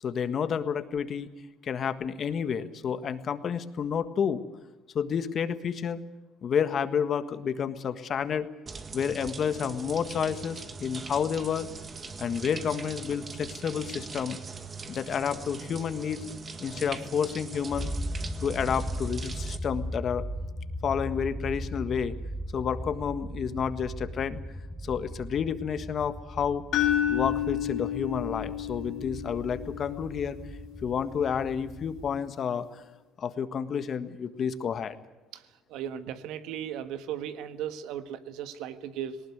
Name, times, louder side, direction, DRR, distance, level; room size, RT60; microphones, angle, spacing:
voice 1, 0.0-1.3 1.6-4.4 4.9-6.0 6.4-8.5 8.9-11.7 12.2-14.4 14.9-16.3 16.6-17.9 18.4-20.2 20.8-22.1 22.5-24.4 24.8-26.6 27.1-30.4 30.8-32.8 33.2-35.0, left 7 dB, 50° left, 11 dB, 1.6 m, -30 dB
sound 1, 8.7-19.6, right 4 dB, 35° right, 1.8 m, -41 dB
sound 2, 17.7-32.2, equal, 5° right, 3.1 m, -38 dB
sound 3, 26.7-30.8, left 11 dB, 65° left, 2.8 m, -31 dB
voice 2, 35.7-39.2, right 9 dB, 75° right, 11 dB, 1.4 m, -36 dB
19.0 x 19.0 x 9.5 m, 1.1 s
supercardioid pair, 95°, 0 cm